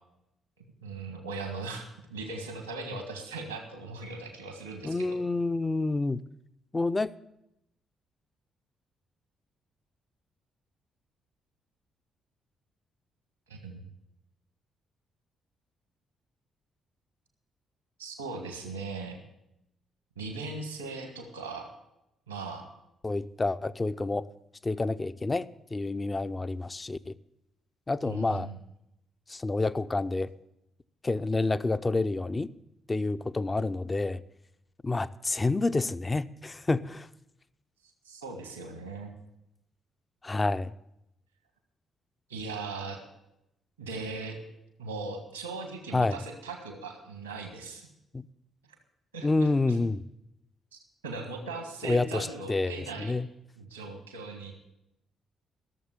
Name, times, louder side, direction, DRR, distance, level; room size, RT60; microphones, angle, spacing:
voice 1, 0.8-5.2 13.5-13.9 18.0-19.2 20.1-21.7 22.3-22.7 28.0-28.6 38.0-39.1 42.3-43.0 43.8-44.4 44.8-47.9 49.1-49.7 51.0-53.1 53.6-54.5, right 3 dB, 90° right, 4 dB, 1.7 m, -39 dB
voice 2, 4.8-6.2 6.7-7.1 23.0-24.3 24.6-27.2 27.9-28.5 29.3-30.3 31.0-32.5 32.9-34.2 34.8-37.1 40.2-40.7 45.9-46.2 48.1-48.3 49.2-50.0 51.8-53.3, left 3 dB, 25° left, 13 dB, 0.6 m, -28 dB
15.0 x 7.2 x 8.2 m, 0.85 s
figure-of-eight pair, 40°, 0 cm